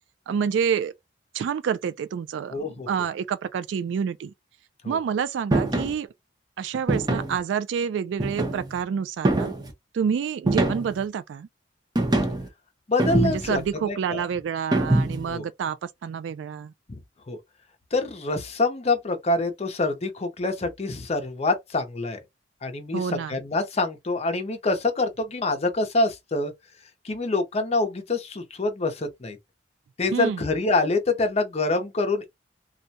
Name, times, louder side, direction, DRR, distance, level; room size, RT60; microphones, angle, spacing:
voice 1, 0.3-0.9 1.3-4.3 4.9-6.1 6.6-9.5 9.9-11.5 13.2-16.7 22.9-23.4 30.1-30.4, right 7 dB, 80° right, 0.3 m, -28 dB
voice 2, 2.5-2.9 4.8-5.0 12.9-14.2 15.3-15.5 16.9-17.0 17.3-17.4 17.9-22.2 22.6-26.5 27.0-29.4 30.0-32.3, left 2 dB, 35° left, 0.6 m, -26 dB
sound 1, 5.5-5.9 6.9-7.4 8.2-8.8 9.2-9.7 10.5-11.0 11.9-12.5 13.0-13.6 14.7-15.3, right 2 dB, 25° right, 0.7 m, -24 dB
2.4 x 2.1 x 2.7 m
head